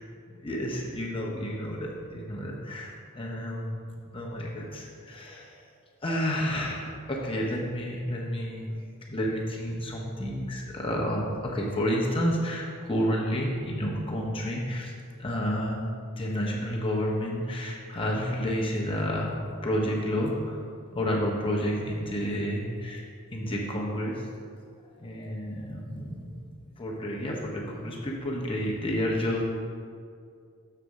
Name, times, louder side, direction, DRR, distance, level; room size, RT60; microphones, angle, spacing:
voice 1, 0.4-5.6 6.0-8.8 9.1-14.9 15.2-15.8 16.1-19.3 19.6-20.6 20.9-23.0 23.3-24.3 25.0-26.4 26.8-29.4, equal, 25° left, -2 dB, 1.0 m, -30 dB
6.9 x 4.2 x 6.3 m, 2.2 s
head